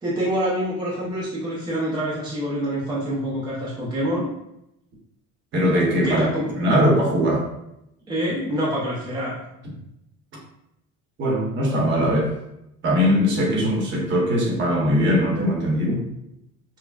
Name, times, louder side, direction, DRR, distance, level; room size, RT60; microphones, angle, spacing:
voice 1, 0.0-4.3 6.0-6.7 8.1-9.4, equal, 15° right, -6 dB, 0.6 m, -26 dB
voice 2, 5.5-6.2 6.6-7.5 11.2-12.3 12.8-16.0, equal, 40° right, -2 dB, 1.0 m, -20 dB
5.6 x 2.1 x 2.4 m, 0.82 s
cardioid pair, 170°, 29 cm